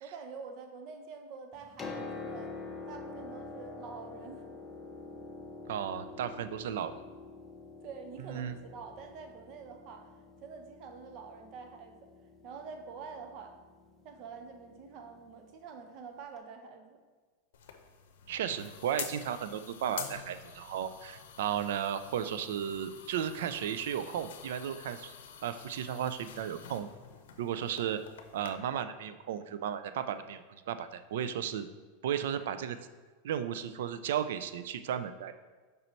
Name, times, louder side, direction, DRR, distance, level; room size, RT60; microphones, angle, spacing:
voice 1, 0.0-2.5 2.9-4.4 7.8-10.1 10.4-12.0 12.4-13.6 14.0-17.0, right 5 dB, 45° right, 5 dB, 0.7 m, -46 dB
Piano, 1.5-15.3 16.4-16.5, left 3 dB, 15° left, 0.7 m, -47 dB
voice 2, 5.7-6.9 8.2-8.6 18.3-25.1 25.4-26.9 27.4-28.0 28.3-31.7 32.0-32.8 33.2-35.3, right 9 dB, 75° right, 11 dB, 0.4 m, -34 dB
sound 1, 17.5-28.5, left 8 dB, 85° left, 0.6 m, -47 dB
5.4 x 4.4 x 4.0 m, 1.4 s
supercardioid pair, 140°, 0 cm